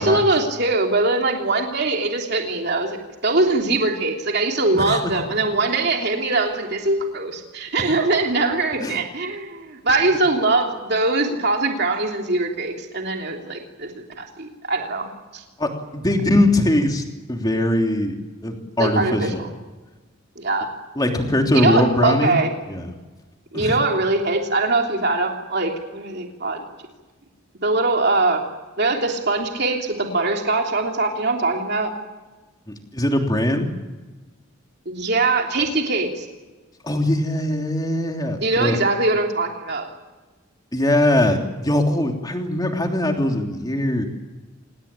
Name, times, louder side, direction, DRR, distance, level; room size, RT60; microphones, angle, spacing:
voice 1, 0.0-15.1 15.3-15.4 18.8-19.5 20.4-20.7 21.5-22.5 23.5-26.6 27.6-28.4 28.8-31.9 34.8-36.2 38.4-39.9, right 2 dB, 55° right, 2 dB, 3.1 m, -22 dB
voice 2, 4.7-5.2 8.8-9.0 15.6-17.0 17.3-18.2 18.4-19.4 21.0-22.4 22.7-22.9 23.5-23.8 32.7-33.7 36.8-38.8 40.7-44.0, left 1 dB, 20° left, 3 dB, 3.1 m, -21 dB
27.5 x 19.0 x 8.9 m, 1.2 s
head